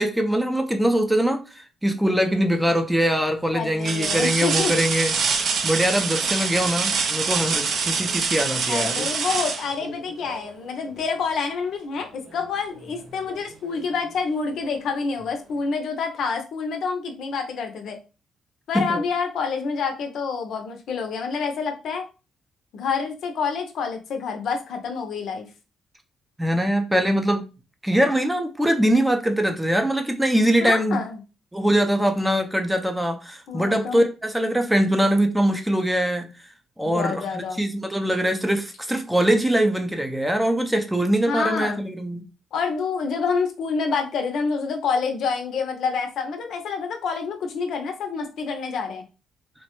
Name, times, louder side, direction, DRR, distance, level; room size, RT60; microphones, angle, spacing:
voice 1, 0.0-5.2 5.6-9.1 18.7-19.0 26.4-27.4 27.8-31.0 31.5-36.3 36.8-42.2, equal, 5° right, 0.5 m, -22 dB
sound 1, 2.1-2.5 3.1-3.2 3.8-10.5 12.3-12.4 12.9-13.9 15.2-15.3, right 5 dB, 60° right, 0.4 m, -26 dB
voice 2, 3.5-4.8 8.7-18.0 18.7-22.0 22.7-25.5 30.6-31.2 33.5-34.0 36.8-37.6 41.3-41.8 42.5-49.0, left 5 dB, 70° left, 0.5 m, -27 dB
3.0 x 2.1 x 2.9 m
cardioid pair, 90°, 0 cm